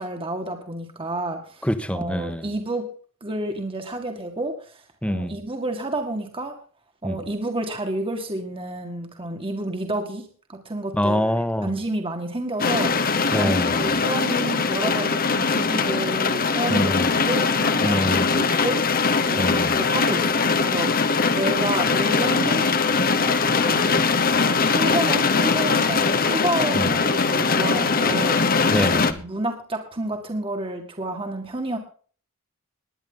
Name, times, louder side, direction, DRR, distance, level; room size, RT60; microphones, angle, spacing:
voice 1, 0.0-1.7 1.9-2.9 3.2-6.6 7.0-11.3 11.6-13.5 13.8-22.7 22.9-28.5 29.2-31.8, right 1 dB, 25° right, 2.0 m, -30 dB
voice 2, 1.6-2.4 5.0-5.4 7.0-7.2 10.9-11.7 13.3-13.8 16.7-17.1 17.8-18.4 19.4-19.8 26.7-26.9 28.7-29.2, equal, 5° left, 1.4 m, -25 dB
sound 1, 12.6-29.1, left 4 dB, 45° left, 1.1 m, -21 dB
20.0 x 10.5 x 3.9 m
head